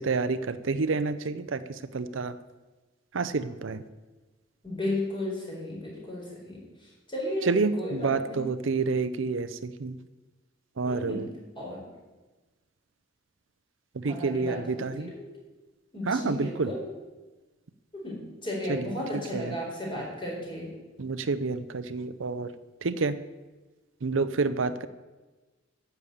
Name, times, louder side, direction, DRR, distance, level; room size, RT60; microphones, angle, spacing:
voice 1, 0.0-2.4 3.1-3.8 7.4-10.0 10.8-11.3 13.9-15.1 16.1-16.7 18.7-18.9 19.3-19.6 21.0-22.5 22.8-23.2 24.0-24.9, right 4 dB, 80° right, 13 dB, 0.6 m, -29 dB
voice 2, 4.6-6.6 7.1-7.5 7.8-8.4 10.9-11.2 11.6-11.8 14.0-14.6 15.0-15.3 15.9-16.8 18.0-20.7, left 1 dB, 25° left, -3 dB, 4.4 m, -34 dB
10.5 x 6.9 x 8.4 m, 1.2 s
head